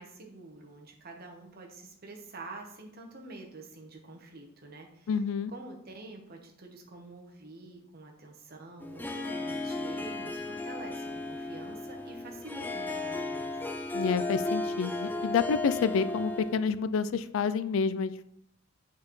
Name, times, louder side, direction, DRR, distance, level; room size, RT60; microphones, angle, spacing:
voice 1, 0.0-5.1 5.5-13.5, right 2 dB, 50° right, 2 dB, 1.1 m, -47 dB
voice 2, 5.1-5.5 13.9-18.2, left 5 dB, 75° left, 14 dB, 0.3 m, -29 dB
Harp, 8.8-16.7, left 2 dB, 10° left, 0.4 m, -35 dB
8.2 x 4.2 x 3.1 m, 0.75 s
head